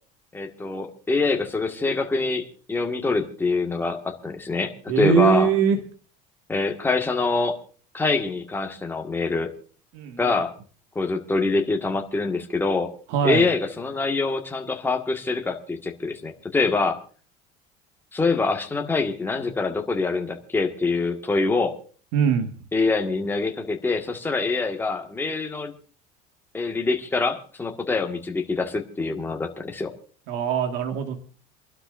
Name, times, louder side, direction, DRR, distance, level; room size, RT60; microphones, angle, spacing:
voice 1, 0.3-4.7 5.0-5.5 6.5-7.6 7.9-9.5 10.2-10.5 10.9-12.9 13.2-17.0 18.1-21.7 22.7-25.7 26.5-29.9, left 3 dB, 10° left, 2 dB, 1.8 m, -25 dB
voice 2, 4.9-5.8 9.9-10.4 13.1-13.5 22.1-22.5 30.3-31.1, right 7 dB, 75° right, 4 dB, 2.0 m, -22 dB
28.5 x 12.0 x 2.6 m, 0.41 s
cardioid pair, 140°, 18 cm